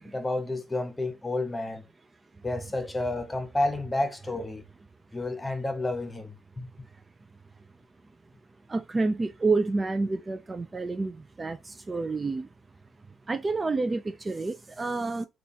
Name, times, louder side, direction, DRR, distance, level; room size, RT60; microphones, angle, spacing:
voice 1, 0.1-1.8 2.4-4.6 5.1-6.7, left 2 dB, 15° left, 0.8 m, -30 dB
voice 2, 8.7-11.1 11.4-12.5 13.3-15.3, right 3 dB, 25° right, 0.3 m, -28 dB
2.8 x 2.4 x 4.0 m
cardioid pair, 90°, 0 cm